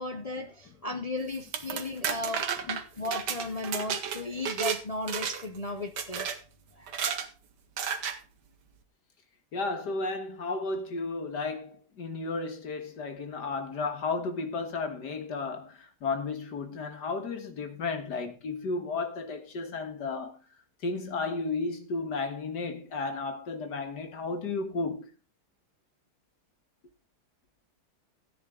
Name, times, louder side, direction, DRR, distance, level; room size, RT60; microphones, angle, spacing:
voice 1, 0.0-6.3 6.8-6.9, left 2 dB, 35° left, 0.6 m, -35 dB
sound 1, 1.3-4.8 5.1-5.6 6.0-6.4 6.9-7.3 7.8-8.2, right 7 dB, 85° right, 1.8 m, -32 dB
voice 2, 9.5-20.4 20.8-25.1, left 3 dB, 80° left, 2.2 m, -33 dB
14.0 x 9.2 x 3.8 m
omnidirectional pair, 1.8 m